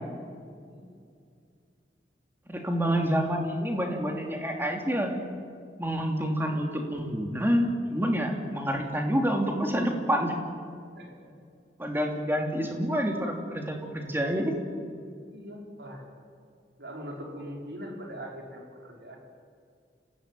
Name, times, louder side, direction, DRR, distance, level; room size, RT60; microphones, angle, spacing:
voice 1, 2.5-5.1 5.8-10.3 11.8-14.5, equal, 15° right, 2 dB, 3.1 m, -28 dB
voice 2, 15.2-16.0 16.8-19.2, equal, 70° right, 0 dB, 5.1 m, -41 dB
29.5 x 16.0 x 9.2 m, 2.3 s
head